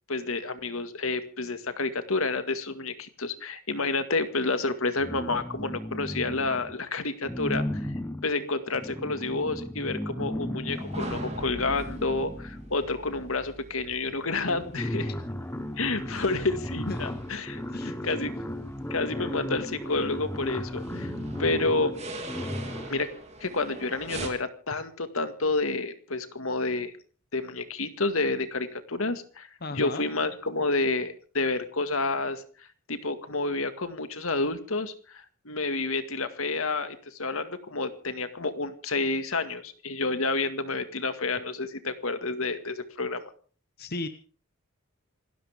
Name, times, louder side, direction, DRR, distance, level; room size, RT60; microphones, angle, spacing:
voice 1, 0.1-7.9 8.2-15.1 15.8-21.1 21.4-22.0 22.9-23.1 23.4-26.9 27.3-32.4 32.9-43.3, left 3 dB, 75° left, 10 dB, 1.9 m, -29 dB
sound 1, 5.0-6.8 7.2-12.9 13.8-13.9 14.2-23.1, left 1 dB, 10° left, 1.0 m, -35 dB
sound 2, 10.7-24.3, right 1 dB, 30° right, 3.1 m, -43 dB
voice 2, 16.8-17.2 17.7-18.2 29.6-30.0 43.8-44.1, left 2 dB, 45° left, 9 dB, 1.0 m, -36 dB
27.5 x 12.5 x 3.6 m, 0.40 s
head